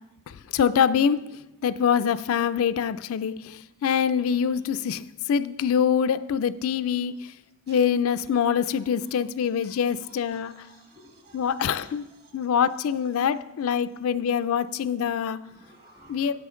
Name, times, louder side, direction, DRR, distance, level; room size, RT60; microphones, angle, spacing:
voice 1, 0.5-1.2 1.6-5.0 5.3-7.1 7.7-10.5 11.3-12.0 12.3-15.4 16.1-16.3, left 7 dB, 70° left, 0.3 m, -24 dB
voice 2, 9.6-12.3 15.5-16.3, right 1 dB, 45° right, 2.0 m, -54 dB
9.9 x 8.2 x 3.7 m
head